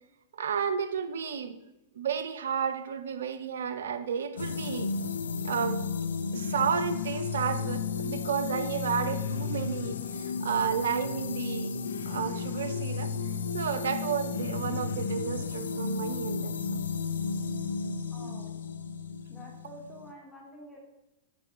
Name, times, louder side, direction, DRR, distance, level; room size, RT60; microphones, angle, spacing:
voice 1, 0.3-1.6 2.0-4.9 5.4-5.8 6.3-11.8 12.1-13.1 13.5-16.8, right 7 dB, 80° right, 11 dB, 0.7 m, -32 dB
sound 1, 4.4-20.1, left 5 dB, 85° left, 0.6 m, -33 dB
voice 2, 18.1-18.5 19.3-20.8, right 1 dB, 10° left, -1 dB, 2.3 m, -48 dB
8.4 x 3.8 x 6.0 m, 0.93 s
hypercardioid pair, 110°, 0 cm